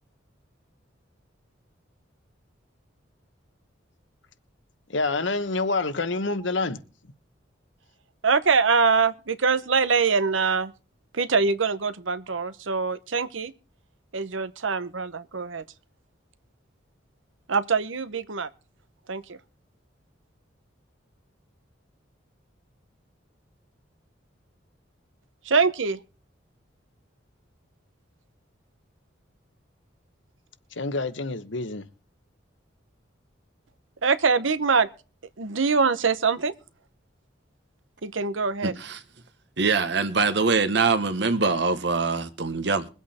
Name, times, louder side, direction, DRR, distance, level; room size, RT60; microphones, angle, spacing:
voice 1, 4.9-6.8 30.8-31.8, left 3 dB, 70° left, 1.2 m, -27 dB
voice 2, 8.2-10.7 11.1-13.5 14.1-15.6 17.5-18.5 19.1-19.4 25.4-26.0 34.0-34.9 35.4-36.5 38.0-38.7, right 5 dB, 80° right, 0.9 m, -23 dB
voice 3, 38.6-39.0 39.6-42.9, right 4 dB, 60° right, 1.2 m, -23 dB
22.0 x 8.3 x 4.3 m
head